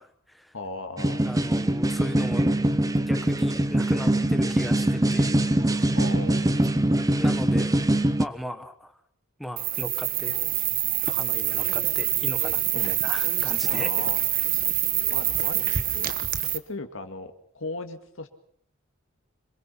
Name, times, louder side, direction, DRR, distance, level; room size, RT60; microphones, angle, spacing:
voice 1, 0.0-0.5 1.3-2.5 3.1-5.3 5.7-6.0 7.2-7.7 8.2-9.0 9.4-10.4 11.0-13.9, equal, ahead, 8 dB, 1.5 m, -37 dB
voice 2, 0.5-1.2 5.9-7.1 12.7-13.1 13.7-14.2 15.1-18.3, left 2 dB, 65° left, 7 dB, 2.1 m, -38 dB
sound 1, 1.0-8.2, right 1 dB, 15° right, 0.8 m, -23 dB
sound 2, 9.6-16.6, right 12 dB, 40° right, 1.2 m, -26 dB
26.5 x 21.0 x 5.8 m, 0.64 s
head